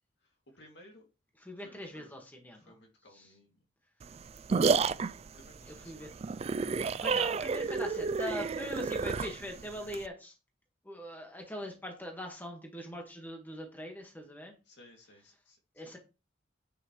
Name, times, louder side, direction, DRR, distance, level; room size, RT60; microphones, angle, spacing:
voice 1, 0.2-1.1 1.6-2.2 2.5-3.6 5.3-6.5 14.6-16.0, left 1 dB, 60° left, 2.5 m, -58 dB
voice 2, 1.4-2.6 3.1-3.3 5.7-6.1 7.0-10.3 10.8-14.5 15.7-16.0, equal, 10° left, 1.6 m, -42 dB
sound 1, 4.0-10.1, right 5 dB, 30° right, 0.3 m, -31 dB
10.0 x 5.9 x 3.1 m
head